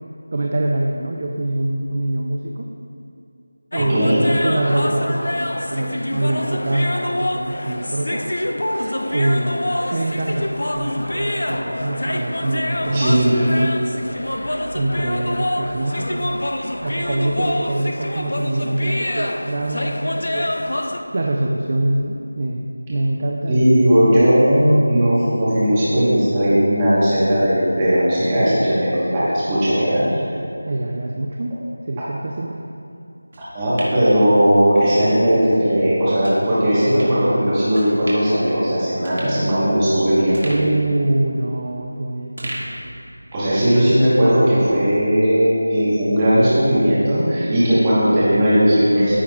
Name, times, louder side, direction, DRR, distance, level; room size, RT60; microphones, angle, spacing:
voice 1, 0.3-2.7 3.7-8.2 9.1-9.6 9.9-14.1 14.7-16.4 16.8-20.5 21.1-23.8 30.7-31.6 31.9-32.6 40.4-42.6, right 1 dB, 25° right, 0 dB, 0.4 m, -24 dB
sound 1, 3.7-21.0, left 1 dB, 75° left, 0.6 m, -26 dB
voice 2, 3.9-4.3 12.9-13.5 23.5-30.0 33.4-40.5 43.3-49.1, equal, 10° right, -10 dB, 1.2 m, -17 dB
sound 2, 33.3-34.9 35.3-35.4 36.2-36.4 37.0-37.1 37.7-38.4 38.7-38.8 39.0-39.9 40.3-41.9 42.4-43.5 43.9-44.0, right 1 dB, 45° right, 1.7 m, -36 dB
14.0 x 5.8 x 2.4 m, 2.5 s
figure-of-eight pair, 180°, 0 cm